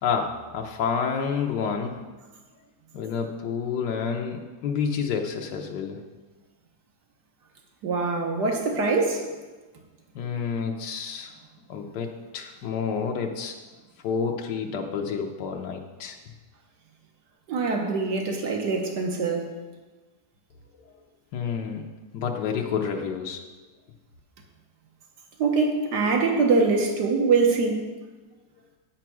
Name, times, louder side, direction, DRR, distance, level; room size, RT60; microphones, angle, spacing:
voice 1, 0.0-2.0 2.9-6.0 10.1-11.3 11.7-13.6 14.0-16.2 21.3-21.9 22.1-23.4, left 6 dB, 85° left, 2 dB, 1.3 m, -29 dB
voice 2, 7.8-9.2 17.5-19.5 25.4-27.9, right 4 dB, 80° right, 2 dB, 1.7 m, -23 dB
9.1 x 5.8 x 6.0 m, 1.3 s
omnidirectional pair, 1.8 m